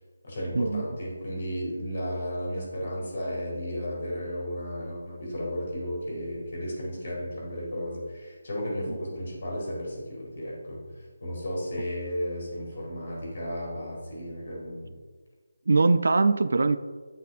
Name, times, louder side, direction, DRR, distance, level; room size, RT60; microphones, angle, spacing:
voice 1, 0.2-10.8 11.2-14.9, equal, 40° left, -3 dB, 2.0 m, -34 dB
voice 2, 15.7-16.8, right 3 dB, 55° right, 13 dB, 0.3 m, -22 dB
8.4 x 5.7 x 2.5 m, 1.4 s
hypercardioid pair, 180°, 0 cm